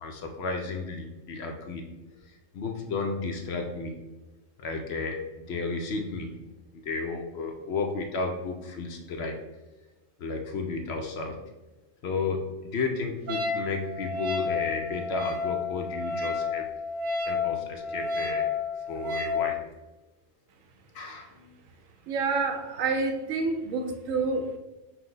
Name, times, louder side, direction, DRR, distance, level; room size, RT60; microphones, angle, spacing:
voice 1, 0.0-1.9 2.2-3.9 4.6-6.3 6.8-9.4 10.2-11.4 12.0-16.7 17.3-18.5 18.8-19.6 20.9-21.6, left 4 dB, 65° left, 3 dB, 0.7 m, -33 dB
Wind instrument woodwind instrument, 13.3-19.4, left 4 dB, 55° right, 0.5 m, -31 dB
voice 2, 22.1-24.6, right 4 dB, 80° right, 6 dB, 1.0 m, -28 dB
5.8 x 2.1 x 3.8 m, 1.0 s
omnidirectional pair, 1.3 m